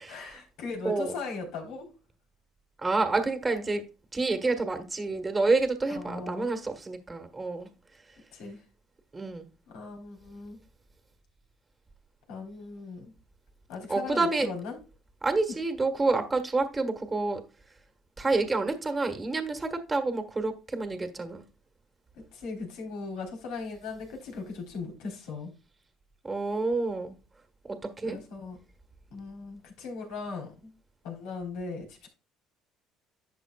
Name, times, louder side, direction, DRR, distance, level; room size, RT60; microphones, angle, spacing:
voice 1, 0.1-1.9 5.9-6.5 8.3-8.6 9.7-10.6 12.3-13.1 13.7-14.8 22.1-25.5 28.0-28.6 29.1-30.7 31.0-32.1, left 4 dB, 85° left, 3.9 m, -38 dB
voice 2, 2.8-3.8 4.1-7.7 9.1-9.5 13.9-14.5 15.2-17.4 18.2-21.4 26.2-27.1 27.7-28.2, right 3 dB, 20° right, 1.4 m, -28 dB
11.5 x 7.6 x 2.4 m
supercardioid pair, 95°, 0 cm